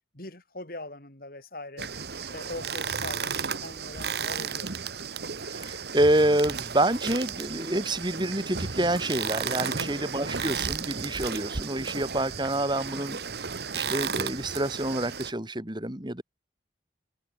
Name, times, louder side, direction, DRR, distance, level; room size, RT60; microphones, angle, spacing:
voice 1, 0.1-1.9 2.3-4.8 9.6-10.1, left 2 dB, 55° left, 4.3 m, -42 dB
sound 1, 1.8-15.3, right 6 dB, 60° right, 1.4 m, -34 dB
voice 2, 5.5-13.2 13.7-16.2, right 1 dB, 25° right, 3.0 m, -27 dB
head